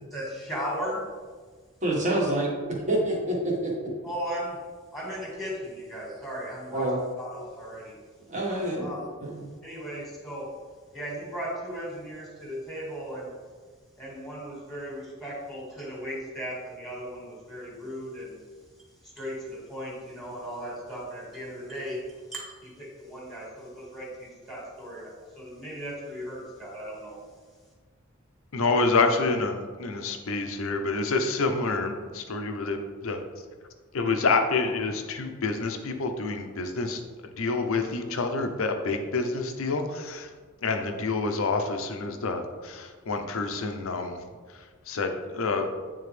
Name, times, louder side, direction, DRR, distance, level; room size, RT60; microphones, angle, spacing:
voice 1, 0.1-1.0 4.0-4.6 4.9-7.9 8.5-9.0 9.6-10.5 10.9-13.3 14.0-18.4 19.0-27.2, equal, ahead, -4 dB, 1.7 m, -37 dB
voice 2, 1.8-2.5 2.9-3.7 6.7-7.0 8.3-8.9 9.2-9.5, right 1 dB, 35° right, -3 dB, 1.4 m, -27 dB
voice 3, 28.5-33.2 33.9-37.0 37.4-40.3 40.6-44.2 44.5-45.7, left 3 dB, 65° left, 6 dB, 0.6 m, -28 dB
8.6 x 3.6 x 3.3 m, 1.5 s
head